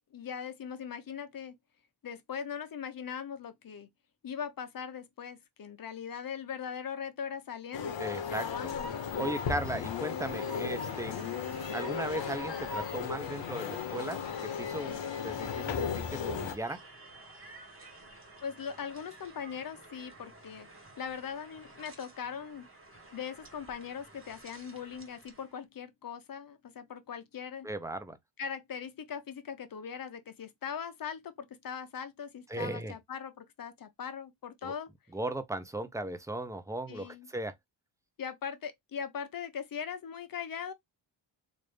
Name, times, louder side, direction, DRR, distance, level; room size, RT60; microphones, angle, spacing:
voice 1, 0.1-1.5 2.0-3.9 4.2-9.0 18.4-20.7 21.0-22.7 23.1-27.7 28.4-34.9 36.9-37.3 38.2-40.7, left 7 dB, 50° left, 0.8 m, -40 dB
sound 1, 7.7-16.6, left 7 dB, 75° left, 0.9 m, -36 dB
Train, 7.7-25.5, equal, 30° right, 1.4 m, -48 dB
voice 2, 8.0-8.7 9.2-11.1 11.7-16.8 27.6-28.2 32.5-32.9 34.6-34.7 35.1-37.5, right 1 dB, 5° right, 0.6 m, -37 dB
3.4 x 2.6 x 3.3 m
cardioid pair, 90°, 45 cm